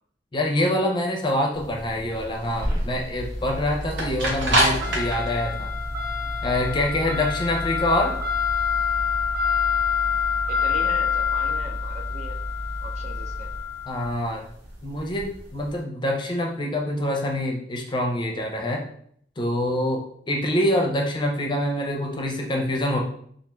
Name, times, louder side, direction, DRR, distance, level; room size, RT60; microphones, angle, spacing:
voice 1, 0.3-5.7 6.4-8.1 13.8-14.4 14.8-18.8 19.4-23.0, left 1 dB, 25° left, 0 dB, 0.5 m, -25 dB
sound 1, 1.6-15.7, left 4 dB, 75° right, 0.8 m, -26 dB
sound 2, 3.1-13.6, equal, 25° right, 1.0 m, -34 dB
voice 2, 10.5-12.4 12.8-13.5, right 3 dB, 40° right, 2 dB, 0.3 m, -39 dB
2.4 x 2.3 x 3.0 m, 0.64 s
head